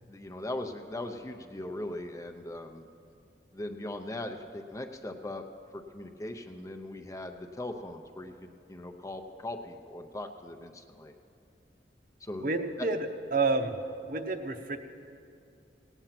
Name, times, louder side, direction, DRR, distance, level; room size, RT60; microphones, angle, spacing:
voice 1, 0.1-2.9 3.5-5.4 5.7-11.1 12.2-12.5 12.8-12.9, left 1 dB, 20° left, 5 dB, 0.6 m, -39 dB
voice 2, 12.4-13.7 14.0-14.8, right 3 dB, 50° right, 6 dB, 0.8 m, -29 dB
17.0 x 9.1 x 5.9 m, 2.5 s
head